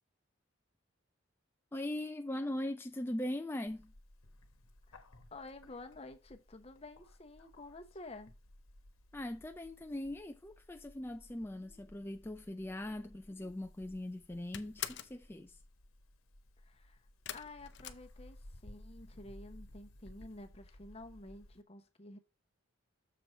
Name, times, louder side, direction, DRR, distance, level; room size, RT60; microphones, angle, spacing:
voice 1, 1.7-3.9 9.1-15.6, left 1 dB, 10° left, 0.3 m, -40 dB
Bird, 3.7-21.6, left 1 dB, 85° left, 1.2 m, -58 dB
voice 2, 5.3-8.3 16.6-17.1 17.3-22.2, left 2 dB, 30° left, 0.9 m, -51 dB
sound 1, 13.5-13.9 14.2-15.2 17.2-18.7 19.0-19.6 19.9-20.0 20.4-20.5, left 11 dB, 55° left, 0.6 m, -45 dB
6.8 x 4.7 x 5.3 m
head